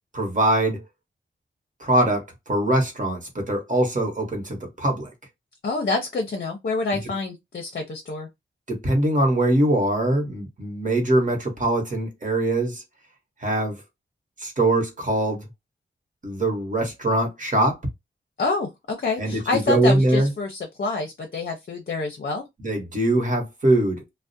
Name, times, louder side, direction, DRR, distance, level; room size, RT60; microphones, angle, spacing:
voice 1, 0.1-0.8 1.8-5.1 6.9-7.0 8.7-12.8 13.4-13.8 14.4-15.5 16.2-17.8 19.2-20.3 22.6-24.0, right 1 dB, 40° right, 1.0 m, -22 dB
voice 2, 5.6-8.3 18.4-22.4, left 3 dB, 50° left, 0.5 m, -27 dB
2.4 x 2.0 x 2.6 m
wide cardioid pair, 110°, 20 cm